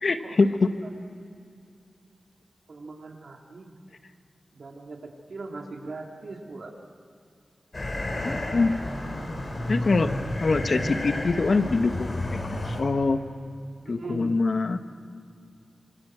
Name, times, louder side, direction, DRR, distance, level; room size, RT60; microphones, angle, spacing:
voice 1, 0.0-0.7 8.2-8.8 9.7-10.1 10.4-13.2 13.9-14.8, left 3 dB, 65° left, 8 dB, 1.4 m, -24 dB
voice 2, 2.7-3.7 4.5-5.0 5.3-6.7 8.5-8.7 13.8-14.4, right 3 dB, 75° right, 1 dB, 3.4 m, -40 dB
sound 1, 7.7-12.8, left 1 dB, 45° left, 4.8 m, -31 dB
27.0 x 26.5 x 6.3 m, 2.4 s
wide cardioid pair, 70°, 0 cm